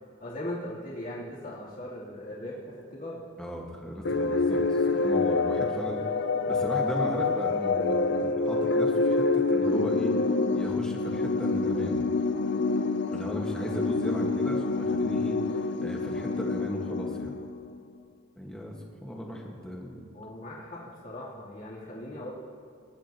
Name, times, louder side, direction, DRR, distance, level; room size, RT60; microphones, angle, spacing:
voice 1, 0.2-3.2 20.1-22.3, left 1 dB, 50° left, -7 dB, 3.2 m, -39 dB
voice 2, 3.4-6.0 6.5-10.1 10.5-12.0 13.1-15.4 15.8-17.4 18.4-18.7 19.0-20.0, equal, 5° left, -1 dB, 1.6 m, -36 dB
sound 1, 4.1-17.8, left 3 dB, 65° left, 0.6 m, -27 dB
21.0 x 11.5 x 3.0 m, 2.2 s
head